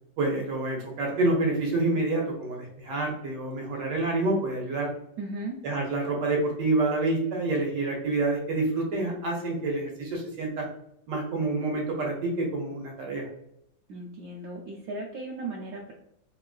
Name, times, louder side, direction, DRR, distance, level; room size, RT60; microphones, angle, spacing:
voice 1, 0.2-4.9 5.6-10.7 11.1-13.3, right 2 dB, 70° right, 0 dB, 1.2 m, -27 dB
voice 2, 5.2-5.6 13.9-15.9, right 2 dB, 85° right, -3 dB, 0.8 m, -36 dB
3.6 x 2.4 x 2.3 m, 0.75 s
omnidirectional pair, 2.1 m